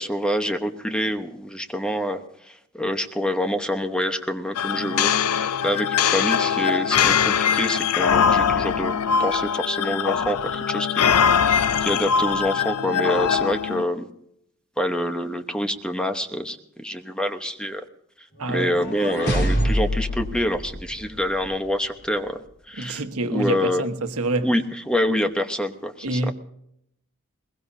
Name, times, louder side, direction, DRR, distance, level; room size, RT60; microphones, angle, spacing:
voice 1, 0.0-11.1 11.4-14.1 14.8-17.8 18.5-23.0 23.3-23.9 24.4-26.3, equal, 5° left, 1.0 m, -26 dB
sound 1, 4.5-13.8, left 7 dB, 85° left, 0.5 m, -22 dB
sound 2, 18.4-21.6, equal, 50° left, 3.7 m, -26 dB
voice 2, 18.4-18.7 22.8-24.5 26.0-26.3, right 2 dB, 80° right, 1.3 m, -26 dB
21.5 x 21.0 x 2.7 m
head